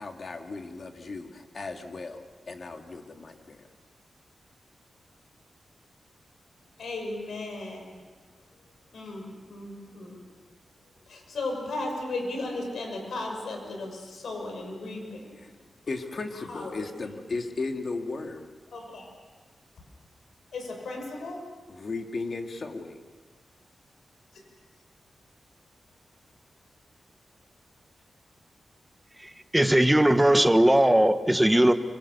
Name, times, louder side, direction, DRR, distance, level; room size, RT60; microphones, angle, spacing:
voice 1, 0.0-3.6 15.4-15.5 15.9-18.5 21.7-23.0, left 3 dB, 50° left, 4 dB, 2.3 m, -36 dB
voice 2, 6.8-8.0 8.9-10.3 11.1-15.4 16.5-16.7 18.7-19.1 20.5-21.4, left 2 dB, 85° left, 2 dB, 6.1 m, -35 dB
voice 3, 29.5-31.7, right 1 dB, 5° right, 8 dB, 1.3 m, -19 dB
25.5 x 25.0 x 6.9 m, 1.4 s
wide cardioid pair, 105°, 0 cm